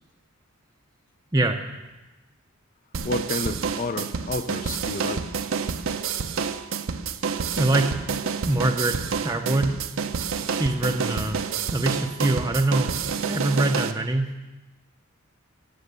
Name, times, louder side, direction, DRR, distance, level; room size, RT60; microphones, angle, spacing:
sound 1, 2.9-13.9, right 6 dB, 65° right, 0.6 m, -28 dB
voice 1, 3.0-5.3 10.4-10.5, left 3 dB, 40° left, 11 dB, 0.6 m, -30 dB
voice 2, 7.6-7.9 8.2-9.8 10.5-11.4 11.7-12.9 13.2-14.5, right 2 dB, 15° right, 3 dB, 0.6 m, -24 dB
15.5 x 6.0 x 6.7 m, 1.1 s
head